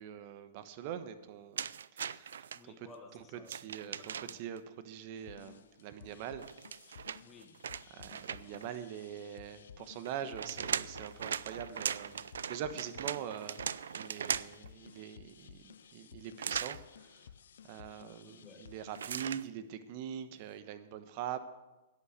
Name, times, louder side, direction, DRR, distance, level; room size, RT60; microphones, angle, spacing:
voice 1, 0.0-2.9 3.5-6.4 7.9-13.6 13.9-17.2 17.6-21.4, right 9 dB, 45° right, 11 dB, 1.2 m, -43 dB
sound 1, 1.6-2.6 3.4-4.6 6.4-8.7 10.1-14.7 16.4-16.8 18.9-19.5, right 7 dB, 85° right, 0.4 m, -38 dB
voice 2, 2.5-4.4 7.2-7.7 18.0-18.6, left 3 dB, 15° left, 1 dB, 2.2 m, -57 dB
sound 2, 5.2-19.0, left 8 dB, 80° left, 0.5 m, -55 dB
11.0 x 8.7 x 8.2 m, 1.1 s
hypercardioid pair, 135°, 0 cm